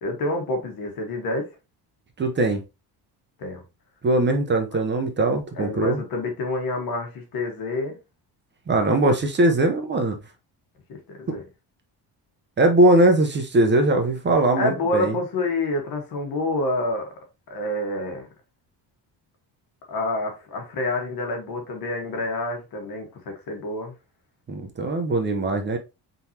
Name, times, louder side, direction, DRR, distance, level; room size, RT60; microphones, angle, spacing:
voice 1, 0.0-1.5 3.4-3.6 5.5-8.0 10.9-11.4 14.6-17.1 17.5-18.3 19.9-23.9, left 2 dB, 60° left, 1.7 m, -28 dB
voice 2, 2.2-2.6 4.0-6.0 8.7-10.2 11.3-11.4 12.6-15.1 24.5-25.8, right 2 dB, 25° right, 0.8 m, -20 dB
4.7 x 3.9 x 2.8 m
cardioid pair, 150°, 40 cm